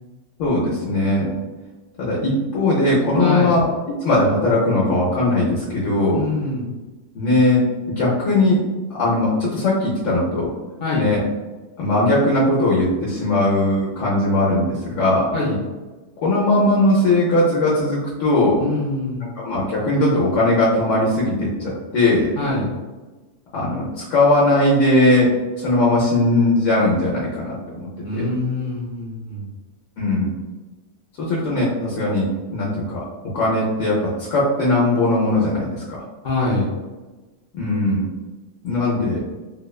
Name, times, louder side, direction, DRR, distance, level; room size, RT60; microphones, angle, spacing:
voice 1, 0.4-1.3 2.0-6.2 7.1-8.6 8.9-10.5 10.9-11.2 11.8-15.3 16.2-18.6 19.4-22.3 23.5-25.3 25.6-28.2 30.0-30.4 31.2-32.3 32.5-33.0 33.3-36.0 37.5-38.1 38.6-39.2, left 2 dB, 80° left, -5 dB, 0.9 m, -19 dB
voice 2, 3.2-3.5 6.1-6.7 10.8-11.1 15.3-15.6 18.6-19.3 22.4-22.7 28.0-29.5 36.2-36.7, left 2 dB, 60° left, -5 dB, 0.5 m, -24 dB
2.8 x 2.1 x 2.3 m, 1.2 s
omnidirectional pair, 1.3 m